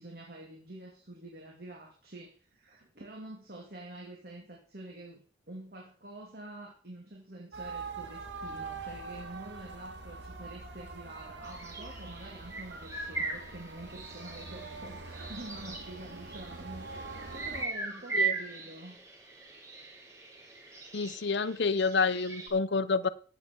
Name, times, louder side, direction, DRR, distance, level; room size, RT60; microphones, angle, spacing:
voice 1, 0.0-16.9 17.3-19.0, right 1 dB, 55° right, -1 dB, 2.7 m, -47 dB
sound 1, 7.5-17.7, right 4 dB, 70° right, 2.0 m, -44 dB
sound 2, 11.4-22.5, right 4 dB, 15° right, 5.3 m, -39 dB
voice 2, 20.9-23.1, left 4 dB, 65° left, 16 dB, 0.7 m, -28 dB
15.0 x 9.4 x 4.6 m, 0.42 s
head